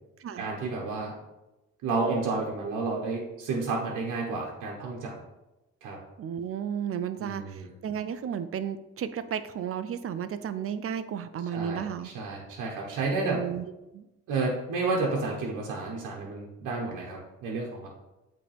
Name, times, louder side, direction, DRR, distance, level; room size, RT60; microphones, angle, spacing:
voice 1, 0.4-1.1 1.8-5.2 5.8-6.0 7.2-7.7 11.5-13.4 14.3-17.9, right 3 dB, 90° right, -2 dB, 1.0 m, -31 dB
voice 2, 6.2-12.1 13.2-13.7 13.9-14.0, right 8 dB, 50° right, 11 dB, 0.5 m, -33 dB
8.5 x 3.2 x 3.4 m, 0.98 s
cardioid pair, 90°, 30 cm